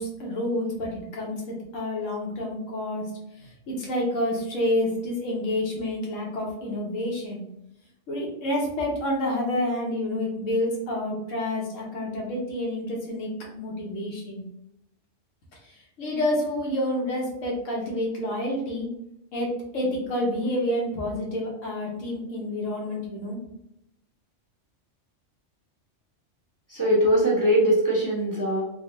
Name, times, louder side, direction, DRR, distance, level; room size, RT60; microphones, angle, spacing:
voice 1, 0.0-3.0 3.4-7.4 8.1-14.4 15.6-18.9 19.3-23.4, left 1 dB, 80° left, -2 dB, 1.3 m, -29 dB
voice 2, 26.7-28.6, equal, 20° right, -7 dB, 0.8 m, -21 dB
3.5 x 2.3 x 2.8 m, 0.81 s
omnidirectional pair, 1.3 m